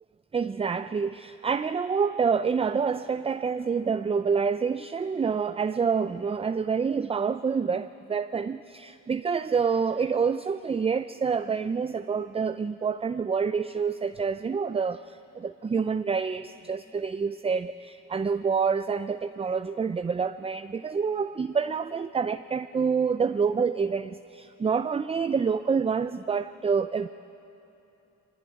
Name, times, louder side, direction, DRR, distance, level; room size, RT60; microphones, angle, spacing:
voice 1, 0.3-27.1, right 5 dB, 20° right, 12 dB, 0.5 m, -27 dB
22.5 x 19.0 x 9.7 m, 2.9 s
cardioid pair, 90°, 30 cm